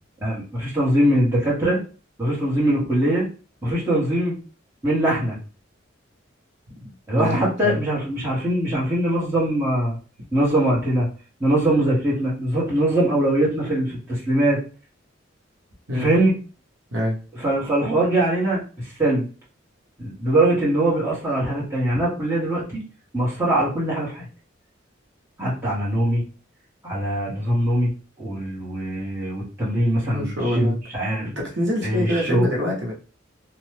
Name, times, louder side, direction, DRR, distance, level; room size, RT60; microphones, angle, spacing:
voice 1, 0.2-1.8 2.2-3.2 3.6-4.4 4.8-5.4 7.1-10.0 10.3-11.1 11.4-14.6 15.9-16.3 17.4-19.3 20.0-22.8 23.1-24.3 25.4-26.2 26.8-27.9 28.2-31.3 31.8-32.5, right 1 dB, 10° right, -7 dB, 1.2 m, -22 dB
voice 2, 6.8-7.8 15.9-16.1 16.9-17.2 30.0-30.8 31.2-32.9, left 1 dB, 60° right, -2 dB, 0.9 m, -25 dB
3.0 x 2.3 x 3.2 m, 0.36 s
head